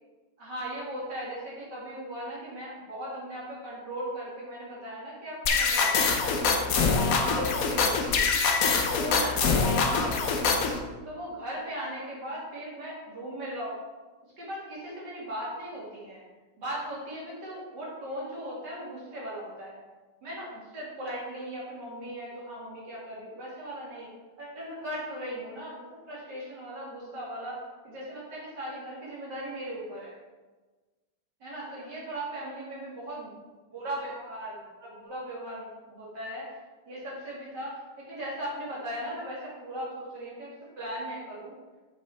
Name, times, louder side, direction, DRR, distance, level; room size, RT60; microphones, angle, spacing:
voice 1, 0.4-8.3 8.7-10.7 11.0-13.8 14.4-16.2 16.6-19.8 20.2-24.1 24.4-30.2 31.4-33.3 33.7-36.5 36.9-41.5, equal, 50° right, -6 dB, 3.2 m, -38 dB
sound 1, 5.4-10.8, left 4 dB, 55° left, 1.0 m, -24 dB
6.6 x 6.2 x 4.4 m, 1.2 s
omnidirectional pair, 2.3 m